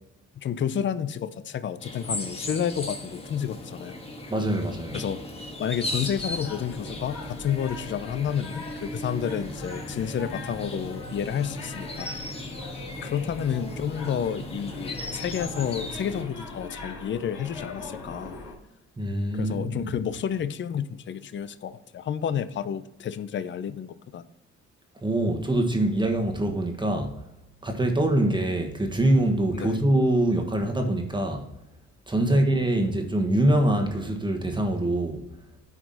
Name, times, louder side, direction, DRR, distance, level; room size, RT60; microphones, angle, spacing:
voice 1, 0.4-4.0 4.9-5.2 5.6-12.1 13.0-18.3 19.3-24.2 29.5-29.8 32.2-32.4, left 8 dB, 40° left, 0.6 m, -30 dB
sound 1, 1.8-16.2, left 1 dB, 20° left, 1.4 m, -37 dB
voice 2, 4.3-5.1 19.0-19.9 25.0-27.2 27.6-31.5 32.1-35.2, right 1 dB, 15° right, 1.3 m, -24 dB
sound 2, 5.6-18.5, left 3 dB, 80° left, 2.5 m, -41 dB
9.9 x 4.9 x 4.0 m
cardioid pair, 90°, 30 cm